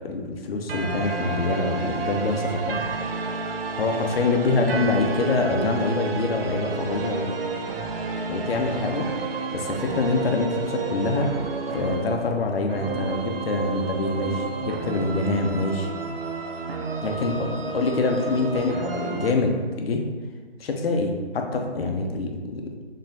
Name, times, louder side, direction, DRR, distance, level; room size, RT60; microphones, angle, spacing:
voice 1, 0.0-2.8 3.8-7.3 8.3-9.1 9.5-11.3 11.7-15.9 17.0-20.0 20.6-22.8, left 3 dB, 65° left, 3 dB, 0.6 m, -25 dB
sound 1, 0.7-19.3, right 4 dB, 60° right, 0.5 m, -31 dB
4.3 x 3.1 x 2.6 m, 1.4 s
hypercardioid pair, 165°, 33 cm